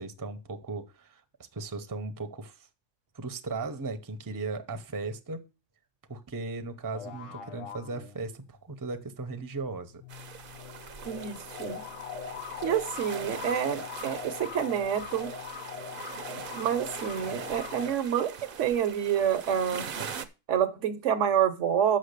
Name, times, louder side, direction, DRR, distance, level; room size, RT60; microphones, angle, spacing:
voice 1, 0.0-2.7 3.1-5.4 6.1-10.0, right 3 dB, 20° right, 0.7 m, -37 dB
sound 1, 6.9-8.6 9.9-18.0, left 7 dB, 85° left, 1.2 m, -41 dB
sound 2, 10.1-20.2, right 6 dB, 50° right, 0.8 m, -42 dB
voice 2, 11.0-11.8 12.6-15.3 16.6-18.3 18.6-19.9 20.5-22.0, right 9 dB, 75° right, 1.1 m, -28 dB
6.5 x 6.0 x 6.5 m
omnidirectional pair, 1.3 m